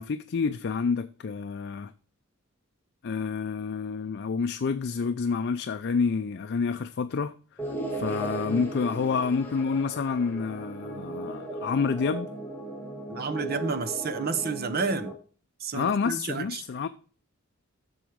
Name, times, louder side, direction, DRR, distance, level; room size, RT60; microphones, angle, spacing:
voice 1, 0.0-1.9 3.0-7.3 7.9-12.3 15.7-16.9, left 5 dB, 55° left, 0.4 m, -28 dB
sound 1, 7.6-15.1, right 1 dB, 10° left, 1.6 m, -36 dB
voice 2, 13.1-15.1 15.6-16.6, right 4 dB, 50° right, 0.9 m, -30 dB
7.7 x 6.3 x 5.0 m
head